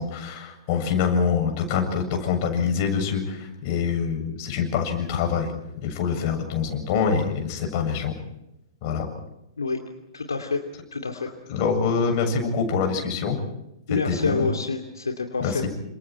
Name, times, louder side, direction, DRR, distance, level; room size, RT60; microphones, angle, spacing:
voice 1, 0.0-5.5 5.8-8.1 8.8-9.0 11.5-13.4 13.9-14.5 15.4-15.7, left 6 dB, 40° left, 4 dB, 7.4 m, -25 dB
voice 2, 10.1-10.6 10.9-11.3 13.9-15.6, left 4 dB, 75° left, 4 dB, 2.6 m, -27 dB
30.0 x 27.5 x 4.5 m, 0.87 s
figure-of-eight pair, 110°, 2 cm